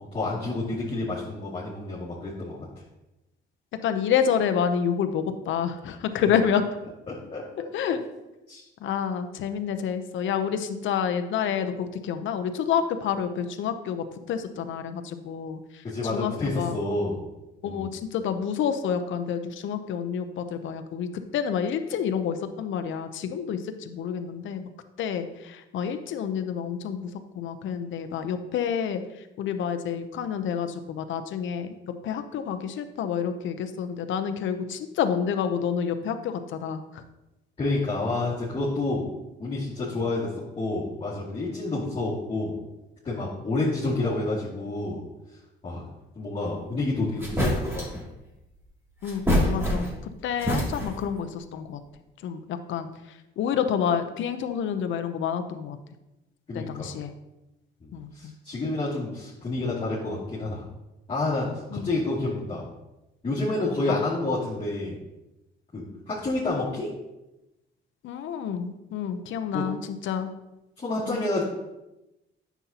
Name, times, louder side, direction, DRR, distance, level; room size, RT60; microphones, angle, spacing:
voice 1, 0.0-2.7 7.1-7.9 8.5-8.6 15.8-17.2 17.6-17.9 37.6-39.1 39.4-42.6 43.0-45.0 45.6-45.9 46.2-48.1 56.5-56.9 57.8-60.6 61.1-62.7 63.2-65.0 65.7-66.9 69.5-69.7 70.8-71.4, left 2 dB, 30° left, -9 dB, 2.5 m, -29 dB
voice 2, 3.8-6.6 7.7-8.0 8.8-15.8 16.1-16.8 17.6-21.1 21.3-24.6 25.0-27.1 27.4-29.0 29.4-31.7 32.0-37.0 49.0-49.9 50.2-51.8 52.2-52.9 53.4-55.8 56.5-57.1 57.9-58.3 61.7-61.9 63.9-64.0 68.0-70.3 71.1-71.2, left 7 dB, 75° left, 8 dB, 0.8 m, -28 dB
sound 1, 46.7-46.8 47.2-48.0 49.0-50.1 50.4-51.1, equal, 10° right, 2.9 m, -26 dB
9.7 x 7.1 x 2.9 m, 0.96 s
cardioid pair, 90°, 20 cm